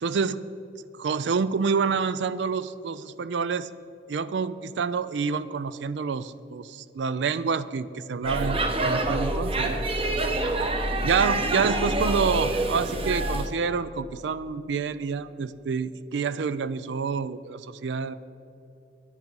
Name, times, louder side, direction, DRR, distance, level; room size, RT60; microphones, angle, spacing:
voice 1, 0.0-0.5 1.0-3.7 4.1-9.8 11.0-18.1, right 5 dB, 85° right, 15 dB, 0.4 m, -28 dB
Speech / Shout / Subway metro underground, 8.2-13.5, right 2 dB, 35° right, 0.9 m, -26 dB
11.0 x 10.0 x 5.3 m, 2.8 s
head